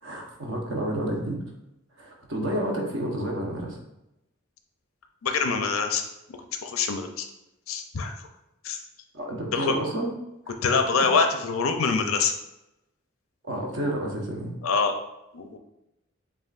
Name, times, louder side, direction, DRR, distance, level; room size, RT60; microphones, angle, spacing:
voice 1, 0.0-1.4 2.0-3.8 9.1-10.1 11.0-11.1 13.4-14.6, right 1 dB, 60° right, -1 dB, 1.0 m, -30 dB
voice 2, 5.2-6.0 6.6-7.3 7.7-8.1 8.6-8.8 9.5-9.8 10.6-12.3 14.6-15.0 15.3-15.6, left 5 dB, 90° left, 6 dB, 0.5 m, -24 dB
7.1 x 2.5 x 2.5 m, 0.89 s
head